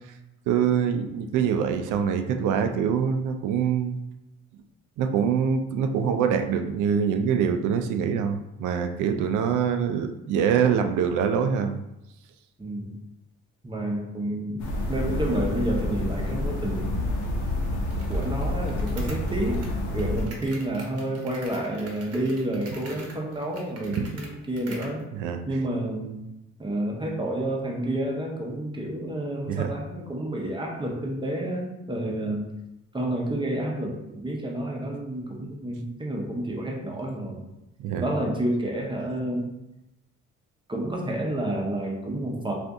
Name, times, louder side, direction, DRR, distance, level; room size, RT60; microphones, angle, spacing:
voice 1, 0.5-4.0 5.0-11.8 23.9-24.1 25.1-25.4 29.5-29.7 37.8-38.1, right 7 dB, 80° right, 6 dB, 0.5 m, -24 dB
voice 2, 9.1-9.4 12.6-13.0 13.6-14.6 14.9-17.0 18.1-19.6 19.9-25.1 25.5-26.2 26.6-32.4 32.9-37.5 38.0-39.5 40.7-42.5, right 1 dB, 15° right, -1 dB, 0.8 m, -30 dB
sound 1, 14.6-20.3, left 1 dB, 90° left, 0.8 m, -28 dB
sound 2, 17.9-25.0, right 2 dB, 55° right, 0.9 m, -46 dB
2.6 x 2.5 x 3.5 m, 0.90 s
cardioid pair, 90°, 30 cm